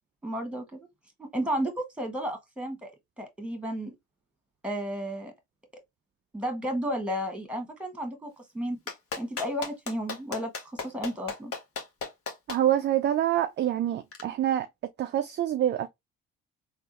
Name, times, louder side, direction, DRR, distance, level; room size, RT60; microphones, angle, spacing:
voice 1, 0.2-0.9 1.2-3.9 4.6-5.3 6.3-8.8 9.2-11.5, equal, 5° right, 1.3 m, -33 dB
Clapping, 8.9-12.6 14.1-14.2, left 4 dB, 45° left, 1.0 m, -34 dB
voice 2, 12.5-14.7 15.0-15.9, right 11 dB, 35° right, 0.4 m, -26 dB
3.5 x 2.0 x 2.9 m
hypercardioid pair, 60°, 32 cm